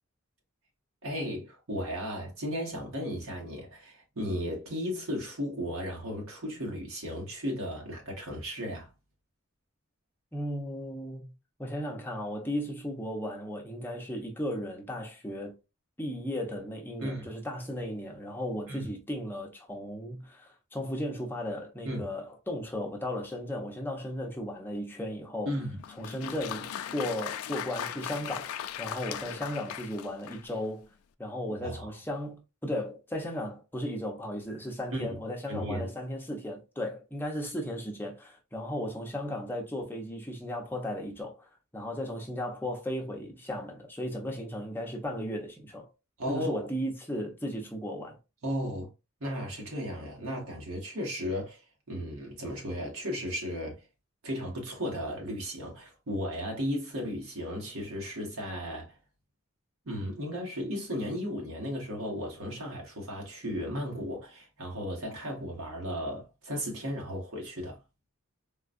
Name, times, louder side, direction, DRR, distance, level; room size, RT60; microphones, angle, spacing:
voice 1, 1.0-8.9 17.0-17.3 18.7-18.9 21.8-22.1 25.5-25.8 31.6-31.9 34.9-35.2 35.5-35.9 46.2-46.7 48.4-48.9 49.2-51.6 51.9-53.8 54.2-59.0 59.9-67.8, equal, 70° right, 1.2 m, -35 dB
voice 2, 10.3-11.3 11.6-15.5 16.0-25.6 26.0-30.8 31.2-45.9 46.3-48.2, left 1 dB, 10° left, 0.8 m, -35 dB
Applause, 25.8-30.7, left 9 dB, 75° left, 0.3 m, -38 dB
3.8 x 2.3 x 2.5 m
head